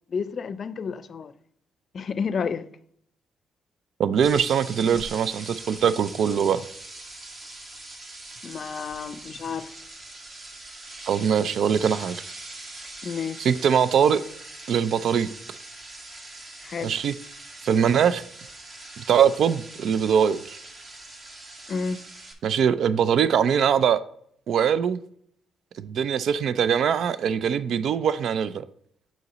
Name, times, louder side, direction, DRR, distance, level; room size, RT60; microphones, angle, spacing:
voice 1, 0.1-1.3 1.9-2.7 4.3-4.4 8.4-9.7 13.0-13.5 16.6-16.9 21.7-22.0, left 5 dB, 50° left, 0.5 m, -31 dB
voice 2, 4.0-6.6 11.1-12.2 13.4-14.2 14.7-15.3 16.8-17.1 17.6-18.2 19.0-20.6 22.4-24.0 24.5-25.0 25.8-28.7, right 8 dB, 65° right, 0.4 m, -22 dB
sound 1, 4.2-22.3, right 2 dB, 45° right, 1.6 m, -42 dB
6.6 x 5.0 x 4.0 m
cardioid pair, 90°, 0 cm